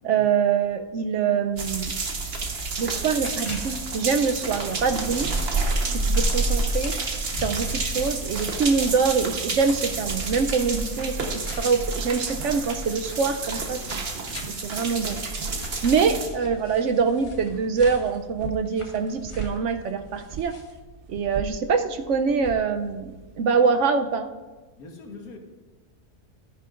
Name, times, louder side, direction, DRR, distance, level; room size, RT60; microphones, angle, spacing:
voice 1, 0.0-1.9 2.8-5.3 5.8-6.9 7.3-11.2 11.6-15.2 15.8-20.5 21.1-23.1 23.4-24.3, right 5 dB, 65° right, 7 dB, 0.8 m, -24 dB
sound 1, 1.5-20.8, left 1 dB, 25° left, 1.0 m, -43 dB
sound 2, 1.6-16.3, right 3 dB, 45° right, 1.2 m, -29 dB
voice 2, 5.7-6.1 24.8-25.4, left 3 dB, 90° left, 3 dB, 1.7 m, -45 dB
sound 3, 18.1-23.5, right 6 dB, 85° right, 0.4 m, -39 dB
13.0 x 10.0 x 2.5 m, 1.2 s
omnidirectional pair, 1.5 m